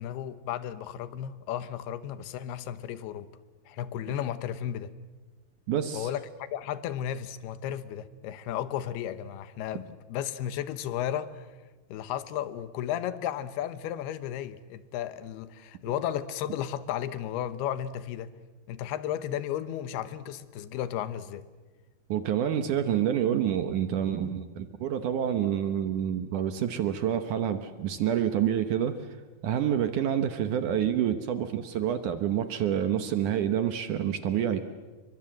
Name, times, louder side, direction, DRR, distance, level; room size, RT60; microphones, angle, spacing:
voice 1, 0.0-3.3 3.7-4.9 5.9-11.5 11.9-18.3 18.7-21.4, left 10 dB, 75° left, 13 dB, 2.9 m, -34 dB
voice 2, 5.7-6.1 22.1-29.2 29.4-34.6, right 9 dB, 70° right, 9 dB, 2.0 m, -28 dB
30.0 x 23.5 x 7.8 m, 1.2 s
omnidirectional pair, 4.8 m